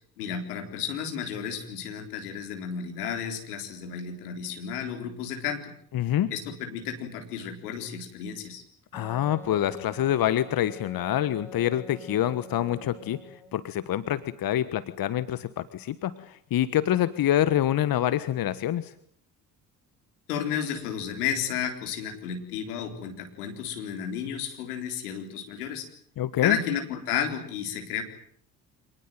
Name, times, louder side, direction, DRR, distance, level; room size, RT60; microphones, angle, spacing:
voice 1, 0.2-5.7 6.3-8.6 20.3-25.9 26.4-28.0, left 8 dB, 80° left, 5 dB, 4.0 m, -32 dB
voice 2, 5.9-6.3 8.9-18.9 26.2-26.6, left 12 dB, 50° left, 14 dB, 1.4 m, -26 dB
Wind instrument woodwind instrument, 8.9-13.6, equal, 5° left, 6.2 m, -47 dB
26.5 x 19.5 x 9.2 m, 0.65 s
hypercardioid pair, 55°, 45 cm